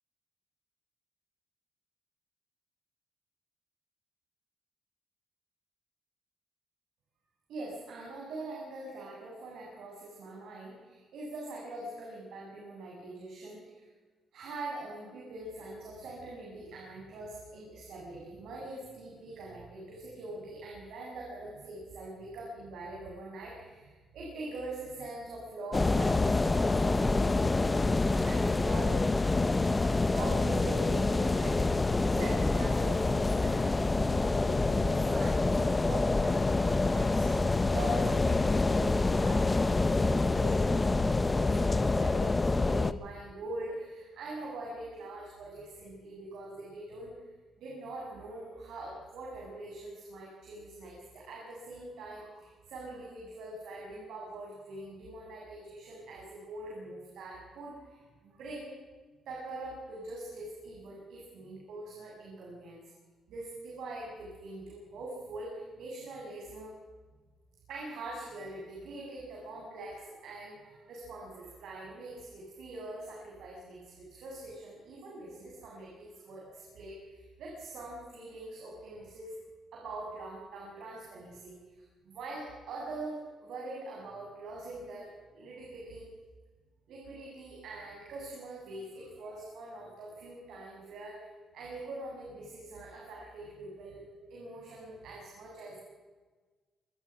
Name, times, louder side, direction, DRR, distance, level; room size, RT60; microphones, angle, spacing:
voice 1, 7.5-13.8 14.3-29.0 30.0-47.3 47.6-58.8 59.3-62.8 63.3-66.7 67.7-79.3 79.7-81.6 82.0-86.0 86.9-91.3 91.5-95.8, right 2 dB, 75° right, -3 dB, 7.3 m, -43 dB
sound 1, 25.7-42.9, left 3 dB, 20° left, 1.0 m, -27 dB
25.5 x 22.5 x 6.1 m, 1.4 s
cardioid pair, 105°, 0 cm